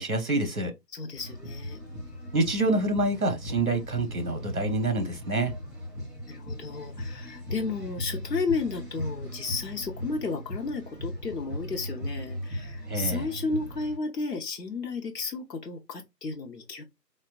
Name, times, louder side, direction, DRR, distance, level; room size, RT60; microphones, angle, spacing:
voice 1, 0.0-0.7 2.3-5.5 12.9-13.3, right 2 dB, 60° right, 0.8 m, -27 dB
voice 2, 0.9-1.8 6.3-16.8, left 4 dB, 75° left, 0.7 m, -33 dB
sound 1, 1.1-14.0, left 1 dB, ahead, 1.2 m, -38 dB
3.5 x 2.1 x 2.4 m
figure-of-eight pair, 180°, 49 cm